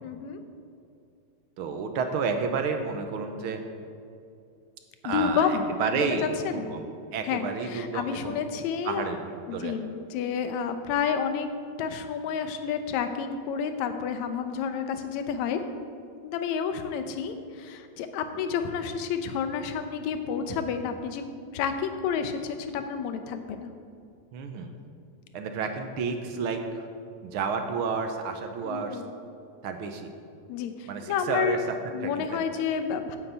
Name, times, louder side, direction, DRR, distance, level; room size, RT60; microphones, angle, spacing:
voice 1, 0.0-0.4 5.0-5.6 5.9-6.1 6.4-6.7 7.2-9.1 9.5-11.5 11.8-15.6 16.2-21.2 21.5-23.7 28.6-29.1 30.5-31.6 31.9-33.2, left 7 dB, 80° left, 8 dB, 2.1 m, -30 dB
voice 2, 1.6-3.6 5.0-8.4 8.8-9.7 24.3-24.7 25.3-26.9 27.2-29.0 29.6-30.1 30.9-31.6 32.0-32.4, right 5 dB, 65° right, 5 dB, 1.4 m, -31 dB
9.6 x 8.4 x 8.1 m, 2.5 s
omnidirectional pair, 3.3 m